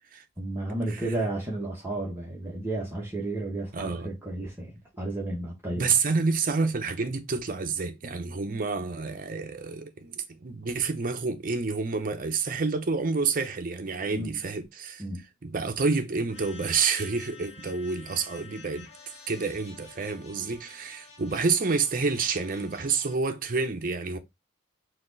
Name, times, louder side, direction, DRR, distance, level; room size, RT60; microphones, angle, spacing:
voice 1, 0.4-5.9 14.1-14.4 15.0-15.2, right 2 dB, 10° right, 1.0 m, -32 dB
voice 2, 3.7-4.1 5.7-15.0 15.4-18.9 19.3-24.2, right 4 dB, 45° right, 0.6 m, -28 dB
sound 1, 16.3-23.2, left 4 dB, 35° left, 0.9 m, -50 dB
4.2 x 2.4 x 3.8 m
head